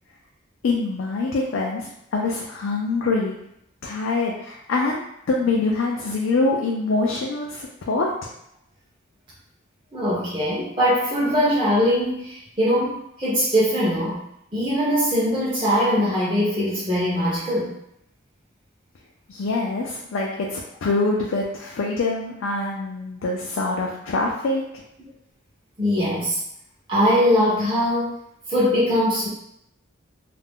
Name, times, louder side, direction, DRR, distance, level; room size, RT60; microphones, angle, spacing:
voice 1, 0.6-3.4 3.8-8.3 19.3-24.6, left 3 dB, 80° left, -2 dB, 0.4 m, -25 dB
voice 2, 9.9-14.2 14.5-17.7 25.8-26.4 26.9-28.2 28.5-29.3, equal, 25° right, -8 dB, 0.5 m, -21 dB
2.4 x 2.1 x 3.5 m, 0.76 s
head